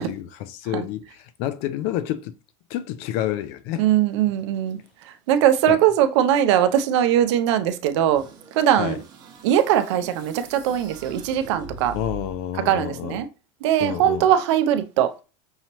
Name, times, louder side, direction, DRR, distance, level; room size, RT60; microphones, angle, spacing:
voice 1, 0.0-2.3 2.7-3.8 5.7-5.8 8.8-9.0 11.9-13.2 13.8-14.3, left 12 dB, 45° left, 0.4 m, -29 dB
voice 2, 3.8-4.8 5.0-8.2 8.5-9.0 9.4-12.0 12.6-13.3 13.6-15.1, right 10 dB, 70° right, 0.6 m, -20 dB
sound 1, 8.1-12.5, right 4 dB, 25° right, 1.1 m, -41 dB
5.5 x 3.0 x 2.9 m
supercardioid pair, 175°, 15 cm